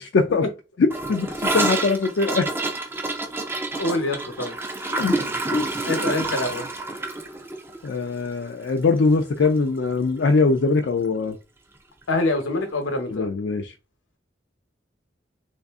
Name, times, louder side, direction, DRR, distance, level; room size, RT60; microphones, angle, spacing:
voice 1, 0.1-0.4 0.8-2.5 4.9-5.2 5.5-5.6 5.9-6.1 7.8-11.4 13.1-13.7, left 4 dB, 60° left, 0.4 m, -22 dB
Gurgling / Toilet flush, 0.9-9.2 9.4-9.6 9.8-10.3 10.6-10.7 11.0-11.1 12.0-12.1, right 2 dB, 10° right, 0.4 m, -28 dB
voice 2, 3.8-4.6 5.8-6.7 12.1-13.3, left 2 dB, 85° left, 0.9 m, -25 dB
3.2 x 2.6 x 3.5 m
head